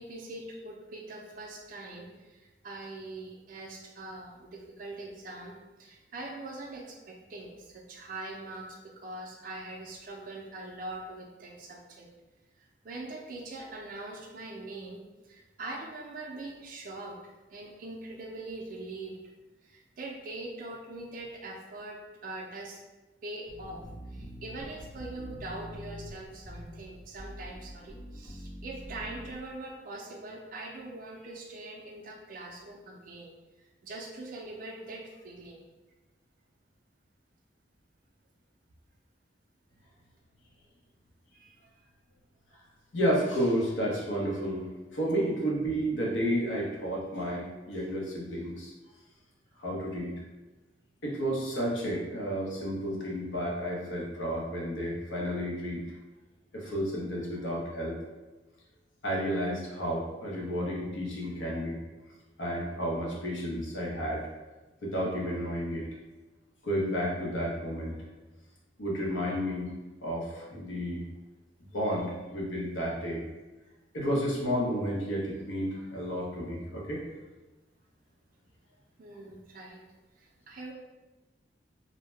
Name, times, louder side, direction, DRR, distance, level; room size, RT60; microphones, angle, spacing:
voice 1, 0.0-5.5 5.8-12.1 12.6-19.2 19.6-22.8 23.2-35.6 41.3-41.5 79.0-79.8 80.2-80.7, right 2 dB, 45° right, 0 dB, 0.4 m, -42 dB
sound 1, 23.5-29.5, equal, 10° left, 0.5 m, -45 dB
voice 2, 42.9-48.7 49.6-50.1 51.0-55.8 56.5-58.0 59.0-61.8 62.4-64.2 64.8-65.9 66.6-68.0 68.8-69.7 70.0-71.0 71.7-73.2 73.9-77.0, equal, 90° left, -3 dB, 0.8 m, -31 dB
2.6 x 2.1 x 3.2 m, 1.1 s
head